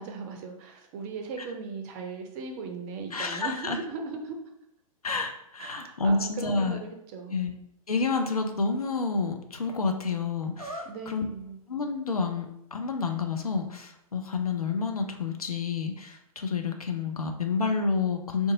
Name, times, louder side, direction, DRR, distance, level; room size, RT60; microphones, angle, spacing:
voice 1, 0.0-4.4 5.6-7.4 10.8-11.6, right 4 dB, 25° right, 3 dB, 0.4 m, -38 dB
voice 2, 3.1-3.8 5.0-6.8 7.3-7.5 7.9-11.3 11.7-18.5, left 4 dB, 85° left, 5 dB, 0.4 m, -29 dB
sound 1, 10.5-11.3 11.9-12.0 12.4-15.9, right 1 dB, 85° right, 0.5 m, -46 dB
2.6 x 2.3 x 3.7 m, 0.80 s
figure-of-eight pair, 110°, 18 cm